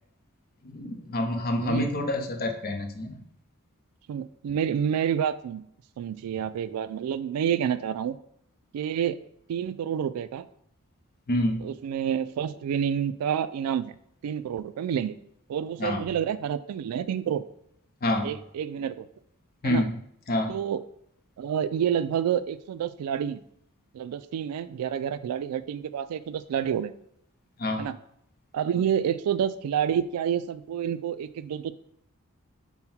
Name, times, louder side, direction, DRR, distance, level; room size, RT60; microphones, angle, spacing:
voice 1, 0.6-3.3 11.3-11.7 15.8-16.0 18.0-18.3 19.6-20.0 20.3-20.5 27.6-27.9, left 1 dB, 45° left, 5 dB, 0.6 m, -27 dB
voice 2, 1.6-1.9 4.1-5.7 6.0-8.2 8.7-9.2 9.5-10.5 11.6-14.0 14.2-15.1 15.5-17.4 18.2-19.1 19.6-19.9 20.5-20.8 21.4-23.4 23.9-26.9 27.8-28.0 28.5-31.7, right 8 dB, 90° right, 14 dB, 0.3 m, -28 dB
5.6 x 2.1 x 4.3 m, 0.73 s
head